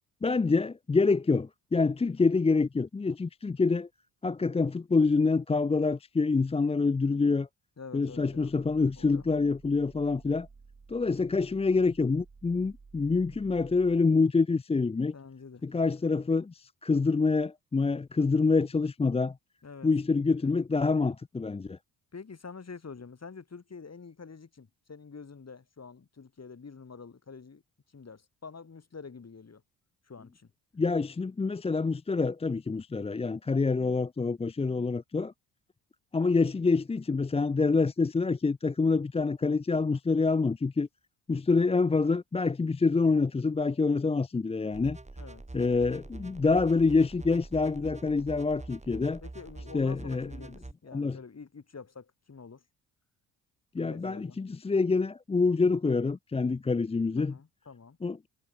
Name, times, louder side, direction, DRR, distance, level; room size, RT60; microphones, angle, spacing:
voice 1, 0.2-3.9 4.2-7.5 7.9-10.5 10.9-15.1 15.6-19.4 19.8-21.8 30.8-35.3 36.1-40.9 41.3-45.0 45.5-49.2 49.7-50.3 50.9-51.2 53.7-57.3 58.0-58.3, left 4 dB, 15° left, 0.5 m, -26 dB
voice 2, 7.8-8.5 9.0-9.3 15.1-15.6 19.6-19.9 22.1-27.6 27.9-29.6 30.0-30.5 34.6-34.8 45.2-45.4 49.2-52.6 53.8-54.4 57.2-58.0, left 5 dB, 35° left, 4.1 m, -47 dB
sound 1, 8.0-14.0, right 4 dB, 30° right, 5.1 m, -55 dB
sound 2, 44.7-50.7, right 2 dB, 15° right, 3.3 m, -45 dB
hypercardioid pair, 50°, 46 cm